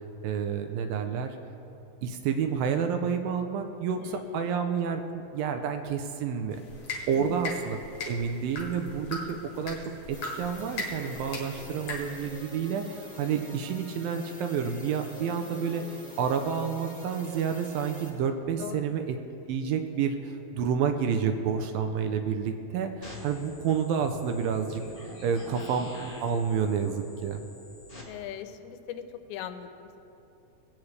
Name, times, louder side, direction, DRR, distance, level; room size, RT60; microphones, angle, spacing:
voice 1, 0.2-1.4 2.0-6.6 7.1-7.8 8.1-9.8 10.1-19.2 19.5-27.4, right 7 dB, 80° right, 6 dB, 2.2 m, -29 dB
voice 2, 3.9-4.5 7.1-7.4 18.6-19.0 28.1-29.0 29.3-30.0, left 10 dB, 85° left, 9 dB, 2.5 m, -40 dB
sound 1, 6.5-12.3, left 2 dB, 50° left, 2.2 m, -39 dB
sound 2, 10.1-18.1, left 1 dB, 5° left, 1.1 m, -45 dB
sound 3, 23.0-28.0, left 1 dB, 25° left, 0.8 m, -44 dB
19.5 x 8.7 x 3.2 m, 2.9 s
omnidirectional pair, 4.3 m